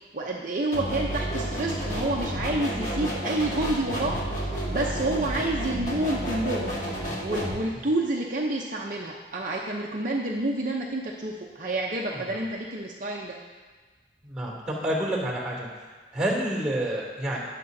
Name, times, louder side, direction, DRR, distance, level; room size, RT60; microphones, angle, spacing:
voice 1, 0.1-6.8 7.2-13.4, right 2 dB, 45° right, -2 dB, 0.7 m, -29 dB
sound 1, 0.7-7.6, right 1 dB, 45° left, 1.7 m, -31 dB
voice 2, 12.1-12.4 14.2-15.7 16.1-17.4, right 1 dB, 5° right, -4 dB, 2.8 m, -29 dB
18.5 x 6.7 x 2.7 m, 1.4 s
head